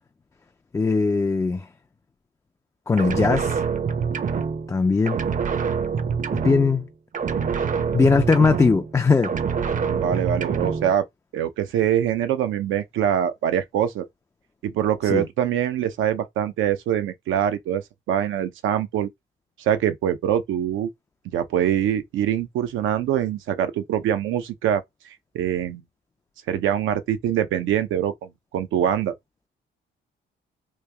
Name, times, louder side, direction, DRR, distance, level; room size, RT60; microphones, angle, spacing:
voice 1, 0.7-1.7 2.9-3.6 4.7-5.2 6.3-6.9 7.9-9.3 15.0-15.2, left 4 dB, 15° left, 0.3 m, -20 dB
sound 1, 3.0-4.8 5.1-6.9 7.1-9.0 9.2-10.9, right 6 dB, 40° right, 0.6 m, -26 dB
voice 2, 9.7-11.1 11.3-14.1 14.6-19.1 19.6-20.9 21.3-24.8 25.3-25.8 26.5-29.1, right 10 dB, 85° right, 0.7 m, -24 dB
3.2 x 2.6 x 3.4 m
cardioid pair, 90°, 20 cm